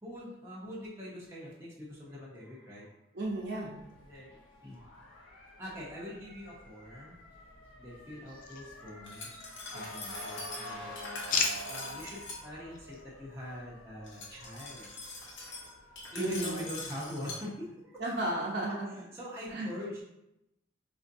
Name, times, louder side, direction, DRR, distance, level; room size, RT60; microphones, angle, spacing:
voice 1, 0.0-3.0 4.0-4.8 5.6-7.2 7.8-9.4 9.7-10.9 11.7-14.9 16.1-18.0 18.7-20.0, left 1 dB, 15° right, -7 dB, 0.8 m, -43 dB
voice 2, 3.1-3.7 16.2-16.7 18.0-19.1 19.5-19.7, right 1 dB, 55° right, -4 dB, 0.9 m, -33 dB
Motor vehicle (road) / Siren, 3.2-16.7, left 1 dB, 90° left, 1.1 m, -49 dB
sound 1, 8.3-9.4 9.7-10.4 10.7-12.2 12.7-13.0, left 5 dB, 45° left, 0.4 m, -36 dB
Glass, 9.0-12.4 14.1-17.4, left 3 dB, 70° left, 0.9 m, -43 dB
5.0 x 2.6 x 2.6 m, 0.86 s
head